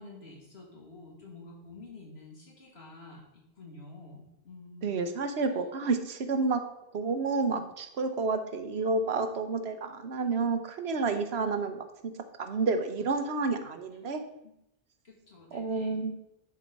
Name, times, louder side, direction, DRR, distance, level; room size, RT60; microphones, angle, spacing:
voice 1, 0.0-3.2 3.5-5.0 14.0-14.5 15.0-16.0, left 2 dB, 85° left, -2 dB, 2.7 m, -49 dB
voice 2, 4.8-6.6 6.9-12.1 12.4-14.2 15.5-16.2, right 4 dB, 85° right, 8 dB, 1.2 m, -30 dB
10.5 x 4.6 x 5.3 m, 0.83 s
omnidirectional pair, 1.0 m